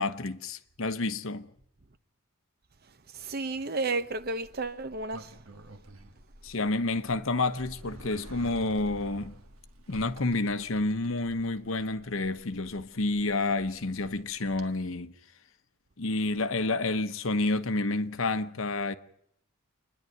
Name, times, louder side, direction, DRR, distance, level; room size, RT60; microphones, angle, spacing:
voice 1, 0.0-1.5 6.4-9.3 9.9-15.1 16.0-18.9, left 2 dB, 60° left, 1.0 m, -29 dB
voice 2, 3.1-5.4, right 3 dB, 45° right, 0.9 m, -32 dB
Sliding door, 4.1-14.7, right 1 dB, 70° right, 1.7 m, -50 dB
27.5 x 10.5 x 9.4 m
head